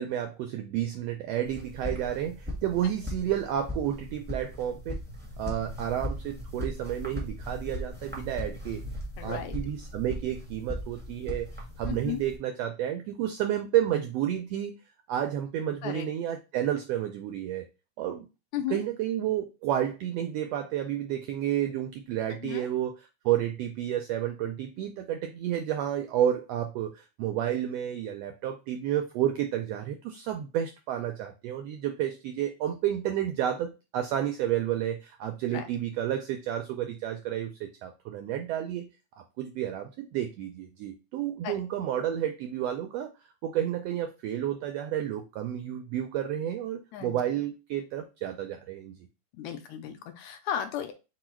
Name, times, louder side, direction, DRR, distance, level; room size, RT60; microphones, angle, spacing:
voice 1, 0.0-5.0 5.4-8.8 9.2-11.5 11.8-14.7 15.1-17.6 18.0-18.3 18.7-38.9 39.4-43.1 43.4-49.0, right 11 dB, 85° right, 5 dB, 1.4 m, -31 dB
sound 1, 1.5-12.4, left 1 dB, 10° right, 0.7 m, -38 dB
voice 2, 9.2-9.5 11.9-12.2 15.8-16.1 18.5-18.8 22.4-22.7 35.5-35.6 41.4-41.5 46.9-47.2 49.4-50.9, left 10 dB, 80° left, 6 dB, 2.0 m, -34 dB
4.8 x 2.3 x 4.3 m, 0.28 s
omnidirectional pair, 3.4 m